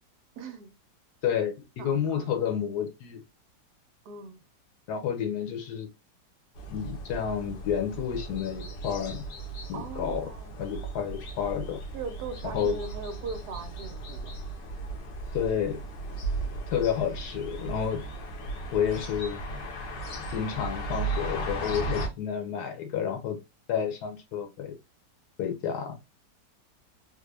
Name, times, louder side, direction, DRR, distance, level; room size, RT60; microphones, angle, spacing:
voice 1, 0.4-0.8 1.8-2.4 4.1-4.4 9.7-10.5 11.9-14.3, right 4 dB, 70° right, 1.1 m, -39 dB
voice 2, 1.2-3.2 4.9-5.9 6.7-9.2 9.7-10.2 10.6-11.8 12.5-12.8 15.3-15.8 16.7-18.0 18.7-19.4 20.3-23.4 23.7-24.7 25.4-25.9, left 8 dB, 70° left, 1.3 m, -30 dB
sound 1, 6.6-22.1, right 2 dB, 85° left, 1.5 m, -36 dB
3.6 x 2.2 x 3.1 m
omnidirectional pair, 1.9 m